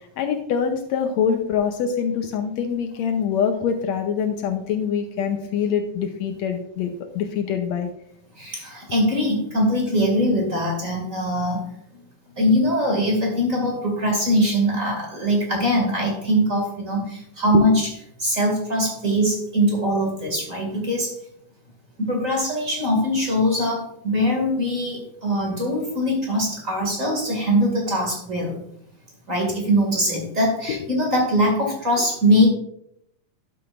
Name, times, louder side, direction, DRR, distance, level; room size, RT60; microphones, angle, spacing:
voice 1, 0.0-7.9 17.5-17.6 30.7-30.8, left 7 dB, 75° left, 5 dB, 1.8 m, -24 dB
voice 2, 8.3-11.7 12.4-17.9 18.2-21.1 22.1-28.6 29.3-32.5, equal, 25° right, 0 dB, 2.3 m, -22 dB
12.0 x 7.9 x 2.6 m, 0.71 s
omnidirectional pair, 3.7 m